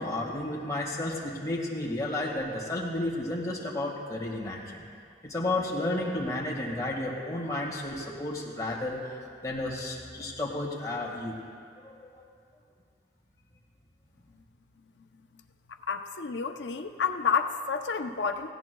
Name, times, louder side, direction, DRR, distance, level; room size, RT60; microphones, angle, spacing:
voice 1, 0.0-4.8 5.2-9.0 9.4-11.4 11.8-12.2, left 1 dB, 20° left, -3 dB, 1.8 m, -32 dB
voice 2, 15.9-18.5, left 6 dB, 90° left, 7 dB, 0.7 m, -29 dB
18.0 x 16.0 x 2.3 m, 2.3 s
head